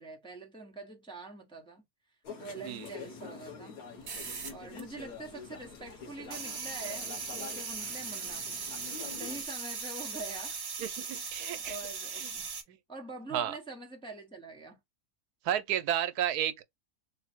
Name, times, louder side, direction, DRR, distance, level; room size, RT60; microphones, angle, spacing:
voice 1, 0.0-1.8 2.4-3.8 4.5-8.5 9.2-10.7 11.2-12.5 12.9-14.8, right 3 dB, 5° left, 0.7 m, -44 dB
sound 1, 2.2-9.4, left 5 dB, 70° left, 1.7 m, -46 dB
sound 2, 4.0-5.3 5.6-12.6, right 5 dB, 45° right, 1.1 m, -39 dB
voice 2, 10.8-11.8 12.2-12.3 12.7-12.8 13.3-13.5 15.4-16.6, right 11 dB, 85° right, 1.1 m, -32 dB
3.7 x 2.1 x 4.3 m
omnidirectional pair, 1.6 m